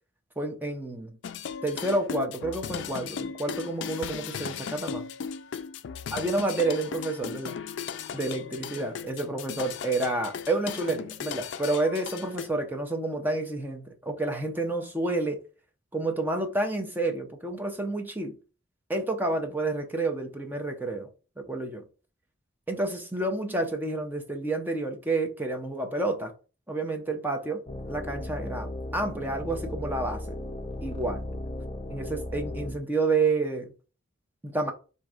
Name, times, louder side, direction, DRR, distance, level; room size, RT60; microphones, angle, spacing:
voice 1, 0.4-1.2 1.6-5.0 6.1-7.5 8.1-15.4 15.9-18.4 18.9-21.1 21.4-21.8 22.7-26.3 26.7-27.6 27.9-30.2 30.8-31.2 31.9-33.7 34.4-34.7, right 2 dB, 10° right, 0.6 m, -29 dB
sound 1, 1.2-12.5, left 7 dB, 65° left, 0.3 m, -37 dB
sound 2, 27.7-32.8, left 1 dB, 30° left, 0.6 m, -36 dB
3.7 x 2.7 x 4.8 m
head